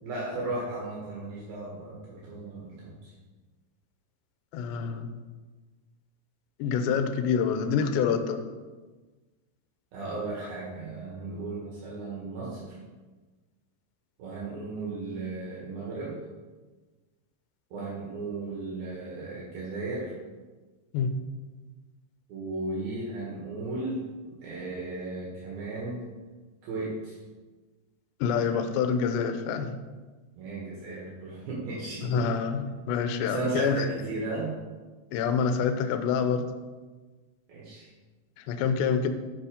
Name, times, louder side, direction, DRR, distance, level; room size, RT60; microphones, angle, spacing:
voice 1, 0.0-3.1 9.9-12.8 14.2-16.2 17.7-20.1 22.3-26.1 26.6-27.2 30.4-32.3 33.3-34.6 37.5-37.9, right 2 dB, 60° right, -5 dB, 3.1 m, -35 dB
voice 2, 4.5-5.1 6.6-8.4 20.9-21.1 28.2-29.8 32.0-33.9 35.1-36.5 38.5-39.1, left 6 dB, 80° left, 8 dB, 2.7 m, -26 dB
9.5 x 5.6 x 5.0 m, 1.3 s
omnidirectional pair, 5.4 m